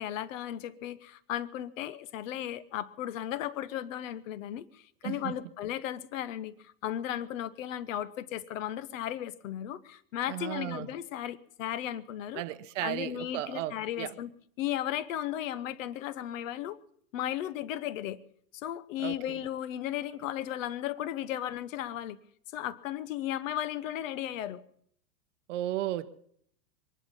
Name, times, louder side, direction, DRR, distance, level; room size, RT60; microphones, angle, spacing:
voice 1, 0.0-12.4 12.8-14.3 14.6-16.8 17.1-18.2 18.5-22.2 22.5-24.6, left 11 dB, 55° left, 0.9 m, -35 dB
voice 2, 10.3-10.9 12.3-14.1 19.0-19.4 25.5-26.1, right 14 dB, 50° right, 0.9 m, -35 dB
22.5 x 11.0 x 5.4 m
supercardioid pair, 155°, 46 cm